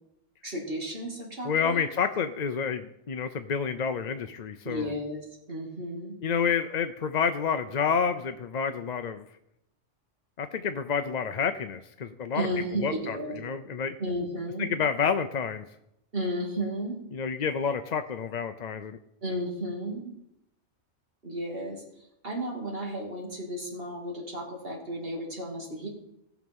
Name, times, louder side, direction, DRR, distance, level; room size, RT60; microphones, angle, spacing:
voice 1, 0.4-1.8 4.6-6.2 12.3-13.4 14.0-14.7 16.1-17.0 19.2-20.1 21.2-21.8 22.2-25.9, right 1 dB, 50° right, -1 dB, 3.0 m, -33 dB
voice 2, 1.4-4.9 6.2-9.3 10.4-12.5 12.7-13.9 14.6-15.6 17.1-19.0, left 6 dB, 50° left, 8 dB, 0.5 m, -29 dB
18.0 x 6.1 x 5.4 m, 0.81 s
omnidirectional pair, 1.3 m